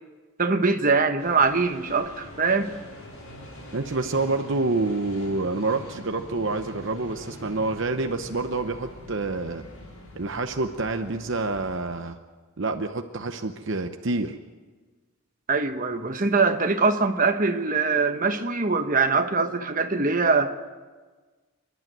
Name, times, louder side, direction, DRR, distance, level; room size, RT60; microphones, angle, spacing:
voice 1, 0.4-2.7 15.5-20.7, right 4 dB, 35° right, 6 dB, 1.2 m, -23 dB
sound 1, 1.2-11.8, left 1 dB, 70° left, 5.8 m, -44 dB
voice 2, 3.7-9.6 10.1-12.2 12.6-14.4, right 3 dB, 55° right, 6 dB, 0.9 m, -27 dB
27.5 x 12.0 x 9.3 m, 1.4 s
head